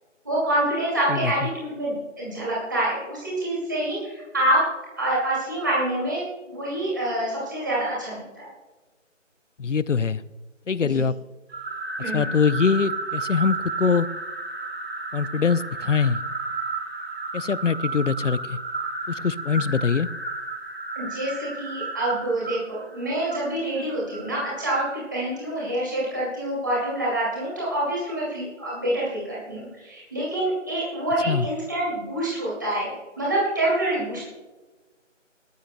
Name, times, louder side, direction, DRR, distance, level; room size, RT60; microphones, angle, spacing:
voice 1, 0.2-4.7 5.0-8.5 10.8-11.0 12.0-12.2 21.0-34.2, right 1 dB, 15° right, -6 dB, 2.4 m, -26 dB
voice 2, 9.6-10.2 10.7-11.1 12.1-14.1 15.1-16.2 17.3-18.6 19.1-20.1 31.3-31.5, left 5 dB, 70° left, 18 dB, 0.7 m, -23 dB
sound 1, 11.5-24.9, right 3 dB, 50° right, 1.7 m, -33 dB
18.0 x 13.5 x 2.2 m, 1.2 s
figure-of-eight pair, 180°, 38 cm